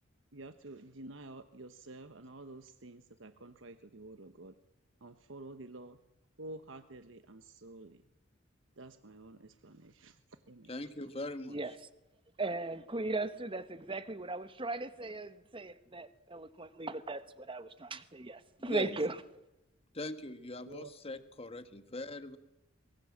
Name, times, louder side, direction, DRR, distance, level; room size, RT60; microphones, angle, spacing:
voice 1, 0.3-4.5 5.0-6.0 6.4-8.0 8.8-10.1 10.5-10.7 20.7-21.2, right 2 dB, 80° right, 1.2 m, -50 dB
voice 2, 10.7-11.6 18.6-19.0 19.9-22.4, left 2 dB, 30° left, 1.6 m, -41 dB
voice 3, 12.4-19.2, right 2 dB, 25° right, 1.2 m, -37 dB
23.5 x 23.0 x 7.4 m
head